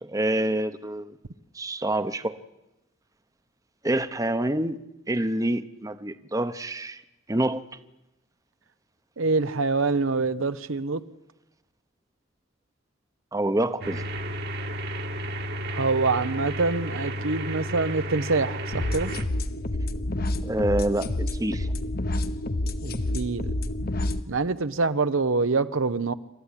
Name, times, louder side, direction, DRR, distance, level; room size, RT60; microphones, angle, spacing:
voice 1, 0.0-1.1 1.5-2.3 3.8-4.8 5.1-7.0 7.3-7.6 13.3-14.0 20.4-21.7, right 1 dB, 15° right, 11 dB, 0.9 m, -27 dB
voice 2, 9.2-11.0 15.7-19.1 22.8-23.5 24.3-26.1, right 3 dB, 80° right, 12 dB, 0.9 m, -25 dB
sound 1, 13.8-19.2, equal, 50° right, 1.6 m, -32 dB
sound 2, 18.7-24.2, left 1 dB, 50° left, 1.0 m, -28 dB
28.5 x 13.5 x 9.9 m, 0.93 s
head